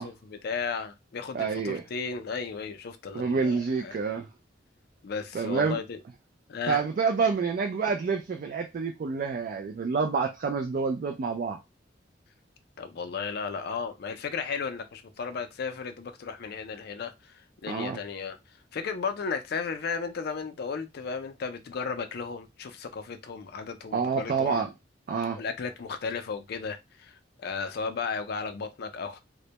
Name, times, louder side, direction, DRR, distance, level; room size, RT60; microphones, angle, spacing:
voice 1, 0.0-4.0 5.0-6.0 6.5-6.8 12.8-18.4 18.7-24.6 25.4-29.2, left 5 dB, 55° left, 0.4 m, -35 dB
voice 2, 1.3-1.8 3.1-4.3 5.3-5.8 6.7-11.6 17.7-18.0 23.9-24.7 25.1-25.4, right 5 dB, 50° right, 0.3 m, -28 dB
2.1 x 2.1 x 2.8 m
head